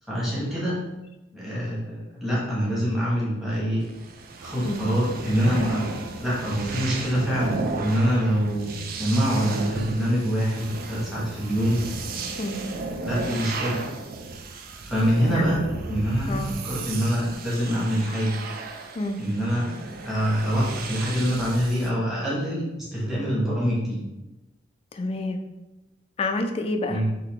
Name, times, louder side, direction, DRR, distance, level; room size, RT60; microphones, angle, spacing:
voice 1, 0.1-0.8 1.3-3.8 4.4-5.9 6.2-8.7 9.0-11.8 13.0-13.8 14.8-15.6 15.9-18.4 19.2-19.7 20.0-24.0 26.9-27.1, equal, ahead, -8 dB, 1.3 m, -25 dB
sound 1, 3.8-21.9, right 3 dB, 55° right, 0.4 m, -34 dB
voice 2, 24.9-25.4 26.2-27.0, left 2 dB, 30° left, 5 dB, 0.3 m, -28 dB
3.7 x 2.7 x 3.5 m, 0.99 s
head